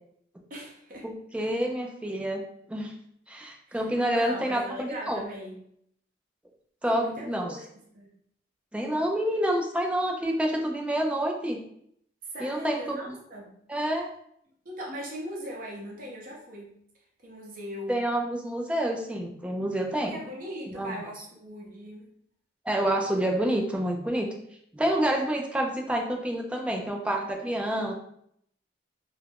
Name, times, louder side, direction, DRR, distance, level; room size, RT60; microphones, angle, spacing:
voice 1, 0.5-1.1 3.7-5.6 6.8-7.6 7.9-8.1 12.3-13.5 14.6-16.8 17.2-18.0 20.1-22.2, equal, 50° right, -3 dB, 0.8 m, -40 dB
voice 2, 1.0-2.4 2.7-2.9 3.3-5.2 6.8-7.5 8.7-11.6 12.4-13.1 13.7-14.1 17.9-20.2 20.7-21.0 22.7-24.4 24.7-27.9, right 1 dB, 5° right, 1 dB, 0.3 m, -28 dB
2.4 x 2.0 x 3.4 m, 0.69 s
head